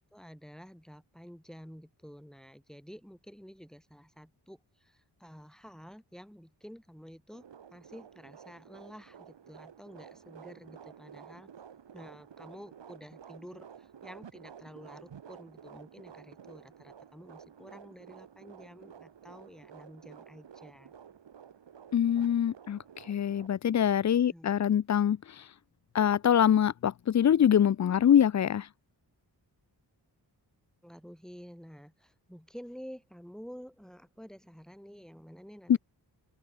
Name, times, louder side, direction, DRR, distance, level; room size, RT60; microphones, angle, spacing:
voice 1, 0.1-7.4 7.7-11.5 11.9-20.9 24.2-24.5 30.8-35.8, equal, ahead, 7.3 m, -50 dB
sound 1, 7.3-23.5, right 8 dB, 80° right, 2.4 m, -52 dB
voice 2, 21.9-22.8 23.1-25.4 25.9-28.7 35.7-35.8, left 9 dB, 40° left, 0.5 m, -24 dB
open air
cardioid pair, 60°, 43 cm